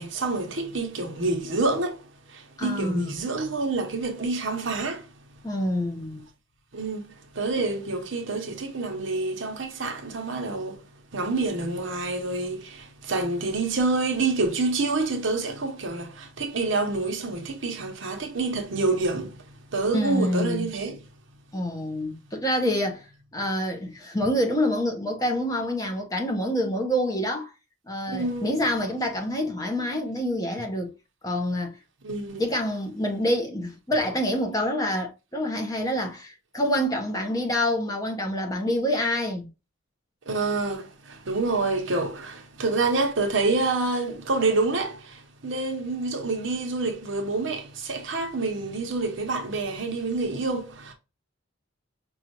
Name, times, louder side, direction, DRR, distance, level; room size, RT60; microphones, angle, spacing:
voice 1, 0.0-5.1 6.7-10.8 11.1-21.1 28.1-28.5 32.0-32.4 40.2-50.9, right 3 dB, 65° right, 0.9 m, -27 dB
voice 2, 2.6-3.2 5.4-6.2 19.9-20.7 21.5-23.0 23.3-27.5 27.9-30.9 31.2-31.8 32.4-39.5, equal, 15° left, 0.7 m, -27 dB
5.4 x 2.4 x 2.8 m
head